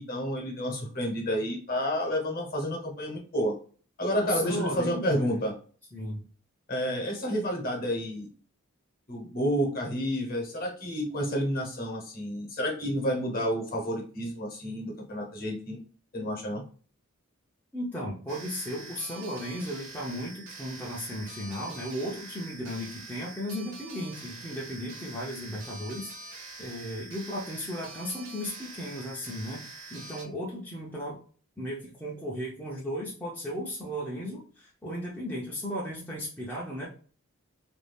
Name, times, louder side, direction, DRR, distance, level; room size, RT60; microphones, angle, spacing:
voice 1, 0.0-3.5 4.0-5.5 6.7-8.3 9.1-15.8 16.1-16.6, equal, 40° left, 1 dB, 1.0 m, -30 dB
voice 2, 4.2-5.4 5.9-6.2 17.7-31.2 31.6-36.9, equal, 10° left, -6 dB, 0.5 m, -35 dB
sound 1, 18.3-30.2, right 3 dB, 60° right, 0.8 m, -45 dB
2.6 x 2.3 x 3.3 m, 0.41 s
head